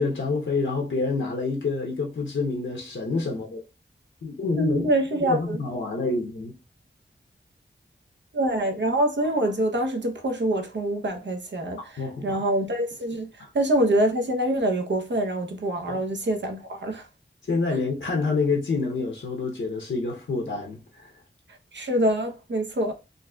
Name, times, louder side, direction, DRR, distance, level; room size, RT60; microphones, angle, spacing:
voice 1, 0.0-3.6 4.2-4.9 5.3-6.5 12.0-12.4 13.4-13.5 15.9-16.0 17.5-21.1, left 3 dB, 80° left, 0.7 m, -27 dB
voice 2, 4.5-5.6 8.3-13.3 13.5-17.1 21.7-22.9, right 1 dB, 70° right, 0.8 m, -25 dB
3.9 x 2.6 x 2.3 m
wide cardioid pair, 60°, 19 cm